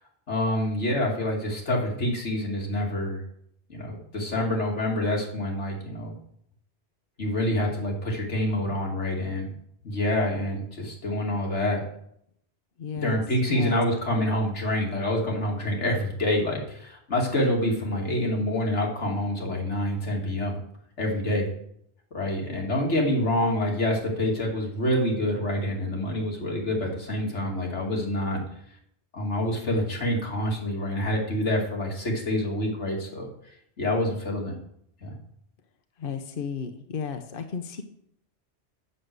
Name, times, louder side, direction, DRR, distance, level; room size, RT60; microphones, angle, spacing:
voice 1, 0.3-3.2 3.7-6.1 7.2-9.5 9.8-11.8 13.0-20.6 21.0-21.5 22.1-28.4 29.1-33.3 33.8-34.6 35.0-35.2, left 1 dB, 90° left, -1 dB, 2.7 m, -27 dB
voice 2, 12.8-13.2 13.5-13.8 36.0-37.8, left 6 dB, 55° left, 6 dB, 1.0 m, -33 dB
7.8 x 6.4 x 7.9 m, 0.71 s
omnidirectional pair, 1.2 m